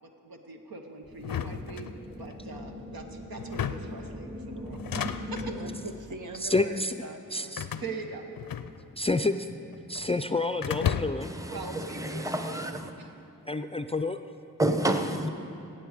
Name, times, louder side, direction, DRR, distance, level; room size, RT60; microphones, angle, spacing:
voice 1, 0.0-1.9 2.2-5.4 7.8-8.2 11.4-12.6 13.0-13.1, right 3 dB, 85° right, 3 dB, 1.0 m, -42 dB
sound 1, 1.0-6.1, left 1 dB, 40° right, 2.8 m, -41 dB
sound 2, 1.2-2.4 3.4-4.0 4.7-5.5 6.3-6.7 7.6-9.1 9.3-10.1 10.6-11.4, left 8 dB, 75° left, 0.5 m, -34 dB
voice 2, 5.5-7.6, right 3 dB, 60° right, 6 dB, 0.9 m, -42 dB
voice 3, 6.4-6.9 7.3-7.7 8.9-9.5 9.9-11.3 13.5-14.2, left 2 dB, 20° left, 9 dB, 0.4 m, -28 dB
voice 4, 11.2-12.9 14.6-15.3, right 1 dB, 10° right, 6 dB, 0.9 m, -29 dB
17.5 x 7.6 x 5.0 m, 2.7 s
cardioid pair, 40°, 35 cm